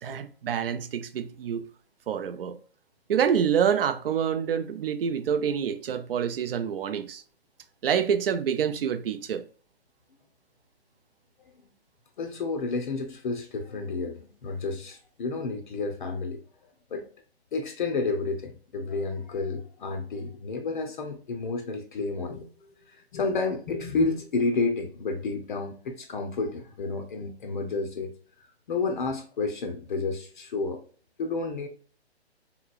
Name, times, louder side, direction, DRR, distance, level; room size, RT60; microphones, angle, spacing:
voice 1, 0.0-1.7 2.1-2.6 3.1-7.2 7.8-9.5, right 8 dB, 60° right, 0.5 m, -27 dB
voice 2, 12.2-16.4 16.9-17.0 17.5-22.5 22.9-28.1 28.4-30.8 31.2-31.7, left 3 dB, 45° left, 0.6 m, -30 dB
3.6 x 2.9 x 2.3 m
hypercardioid pair, 140°, 33 cm